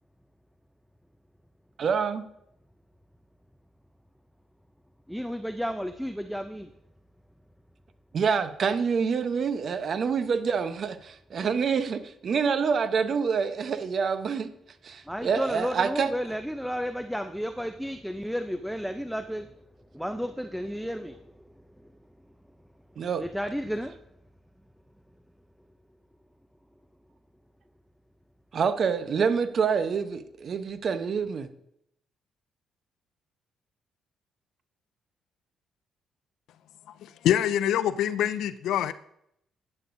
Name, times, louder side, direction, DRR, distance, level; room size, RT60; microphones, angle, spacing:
voice 1, 1.8-2.2 8.1-14.5 14.8-16.1 23.0-23.2 28.5-31.5, right 6 dB, 55° right, 10 dB, 0.8 m, -27 dB
voice 2, 5.1-6.7 15.1-19.5 19.9-21.2 23.2-24.0, equal, ahead, 8 dB, 0.5 m, -32 dB
voice 3, 37.0-38.9, left 10 dB, 80° left, 15 dB, 0.3 m, -25 dB
11.5 x 9.7 x 2.6 m, 0.75 s
cardioid pair, 90°, 0 cm